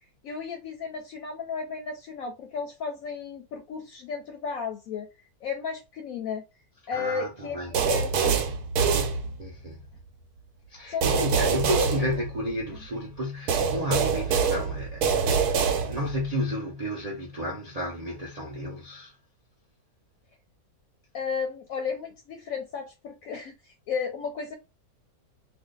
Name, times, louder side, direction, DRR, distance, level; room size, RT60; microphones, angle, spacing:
voice 1, 0.2-5.1 5.4-6.4 6.9-8.4 10.9-11.6 21.1-24.5, left 6 dB, 70° left, 0.9 m, -34 dB
voice 2, 6.9-7.8 9.4-9.8 10.7-19.2, equal, 45° right, 0.5 m, -32 dB
sound 1, 7.7-9.7 11.0-12.8 13.5-16.3, right 5 dB, 85° right, 1.2 m, -25 dB
2.6 x 2.4 x 3.7 m
omnidirectional pair, 1.6 m